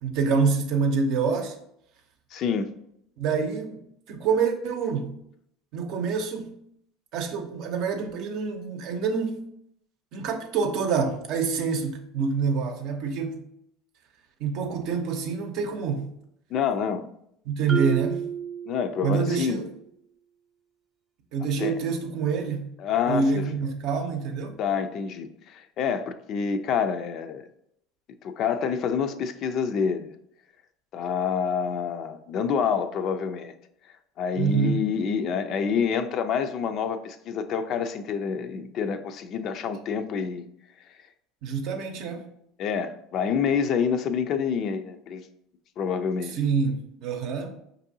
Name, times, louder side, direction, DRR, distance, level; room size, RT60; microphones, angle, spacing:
voice 1, 0.0-1.6 3.2-3.8 4.1-5.1 5.7-6.6 7.1-9.4 10.1-13.4 14.4-16.1 17.5-18.2 19.0-19.7 21.3-22.6 23.1-24.6 34.4-34.8 41.4-42.2 46.3-47.5, right 5 dB, 65° right, 5 dB, 0.6 m, -26 dB
voice 2, 2.3-2.7 16.5-17.1 17.8-17.9 18.7-19.6 21.6-21.8 22.8-23.5 24.6-27.4 28.2-30.1 30.9-33.5 34.2-40.5 42.1-42.2 42.6-45.2 45.8-46.4, left 6 dB, 55° left, 9 dB, 0.4 m, -27 dB
Marimba xylophone, 17.7-19.4, right 8 dB, 20° right, 0.6 m, -31 dB
5.2 x 2.7 x 2.7 m, 0.74 s
supercardioid pair, 90°, 0 cm